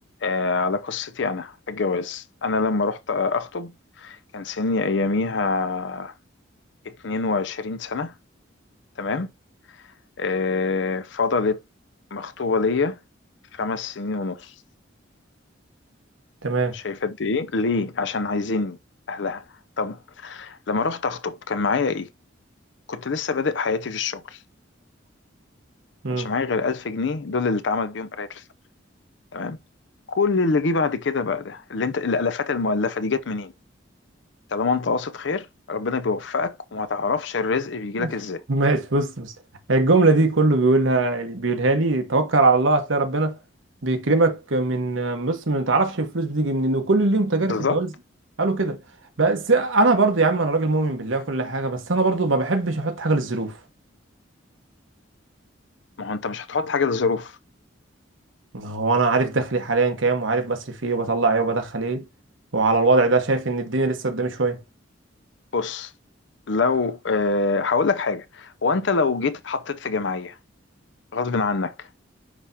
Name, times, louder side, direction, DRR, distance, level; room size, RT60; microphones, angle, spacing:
voice 1, 0.2-6.1 6.9-8.1 9.0-9.3 10.2-11.6 12.1-13.0 13.5-14.5 16.7-18.8 19.1-19.4 19.8-22.1 22.9-24.4 26.1-28.4 29.3-29.6 30.2-33.5 34.5-38.4 47.5-47.8 56.0-57.3 65.5-65.9 66.5-70.3 71.1-71.9, left 4 dB, 65° left, 0.6 m, -25 dB
voice 2, 16.4-16.8 26.0-26.3 38.0-38.1 38.5-39.3 39.7-43.3 43.8-47.9 48.4-48.8 49.2-53.5 58.5-62.0 62.5-64.6, right 3 dB, 80° right, 1.3 m, -21 dB
9.8 x 3.5 x 2.8 m
head